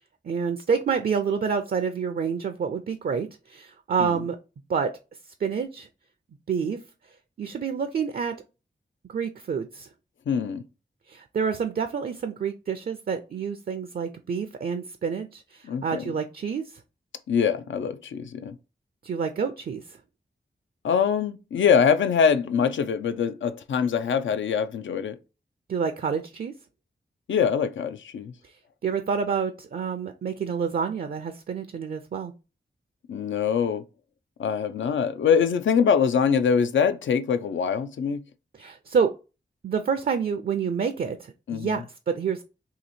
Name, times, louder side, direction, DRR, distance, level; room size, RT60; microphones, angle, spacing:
voice 1, 0.2-4.4 4.7-4.9 5.4-5.9 6.5-6.8 7.4-8.4 9.1-9.9 11.1-16.8 19.0-20.0 25.7-26.5 28.4-28.5 28.8-32.3 38.6-39.1 39.6-42.4, right 6 dB, 55° right, 0.4 m, -28 dB
voice 2, 10.3-10.6 15.6-16.0 17.3-18.6 20.8-25.2 27.3-28.3 33.1-33.8 34.4-38.2 41.5-41.8, left 7 dB, 80° left, 0.4 m, -23 dB
2.9 x 2.7 x 4.1 m
cardioid pair, 55°, 19 cm